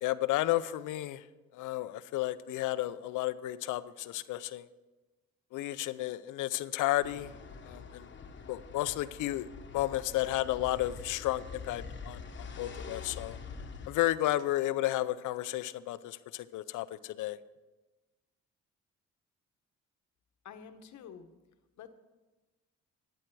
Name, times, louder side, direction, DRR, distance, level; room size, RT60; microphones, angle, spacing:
voice 1, 0.0-1.2 1.5-4.7 5.5-7.3 7.6-8.1 8.5-9.5 9.7-13.4 13.9-17.4, left 15 dB, 85° left, 16 dB, 0.5 m, -32 dB
sound 1, 7.0-13.9, left 5 dB, 40° left, 1.1 m, -45 dB
voice 2, 20.4-21.3 21.8-21.9, left 7 dB, 70° left, 8 dB, 1.0 m, -48 dB
12.0 x 8.9 x 4.7 m, 1.2 s
cardioid pair, 90°, 30 cm